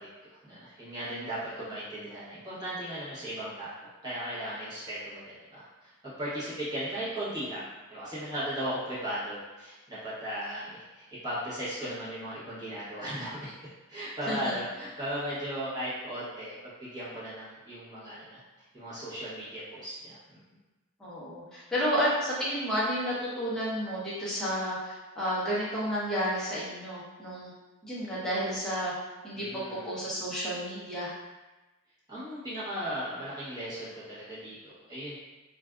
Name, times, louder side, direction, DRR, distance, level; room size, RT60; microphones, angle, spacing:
voice 1, 0.3-3.7 4.0-7.6 7.9-13.5 13.9-18.4 18.7-20.4 29.3-30.0 32.1-35.1, equal, 20° right, -11 dB, 0.9 m, -37 dB
voice 2, 21.0-27.5 27.8-28.9 29.2-31.1, equal, 5° left, -9 dB, 0.7 m, -31 dB
2.5 x 2.3 x 2.2 m, 1.1 s
head